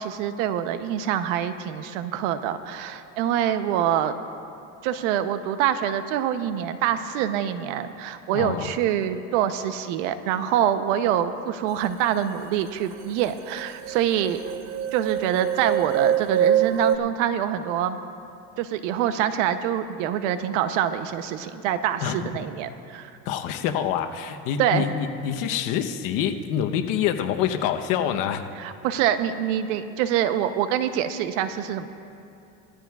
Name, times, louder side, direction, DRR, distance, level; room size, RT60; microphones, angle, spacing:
voice 1, 0.0-4.1 4.8-14.4 14.9-18.0 18.6-23.1 24.6-24.9 28.6-31.9, right 10 dB, 80° right, 10 dB, 0.8 m, -25 dB
voice 2, 8.3-8.7 22.0-22.1 23.3-28.4, left 9 dB, 65° left, 6 dB, 1.0 m, -26 dB
sound 1, 12.9-13.0 13.2-17.0, right 9 dB, 45° right, 0.7 m, -24 dB
20.0 x 14.0 x 2.4 m, 2.7 s
supercardioid pair, 120°, 36 cm